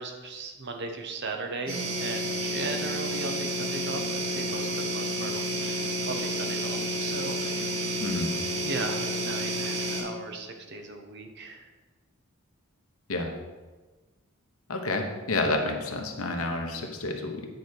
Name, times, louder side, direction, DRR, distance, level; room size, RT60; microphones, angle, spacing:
voice 1, 0.0-8.3 8.6-11.7, right 3 dB, 55° right, 4 dB, 0.9 m, -37 dB
sound 1, 1.7-10.0, right 1 dB, 80° right, 2.3 m, -30 dB
voice 2, 8.0-8.3 13.1-13.3 14.7-17.5, left 2 dB, 90° left, 3 dB, 1.1 m, -29 dB
9.2 x 4.9 x 4.6 m, 1.3 s
head